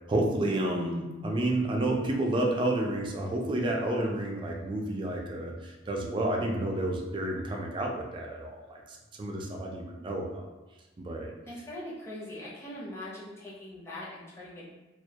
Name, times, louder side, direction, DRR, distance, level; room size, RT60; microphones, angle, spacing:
voice 1, 0.1-10.5 11.0-11.3, right 1 dB, 25° right, 0 dB, 0.3 m, -30 dB
voice 2, 11.5-14.7, left 1 dB, 15° left, -8 dB, 0.6 m, -41 dB
2.3 x 2.1 x 2.7 m, 1.1 s
head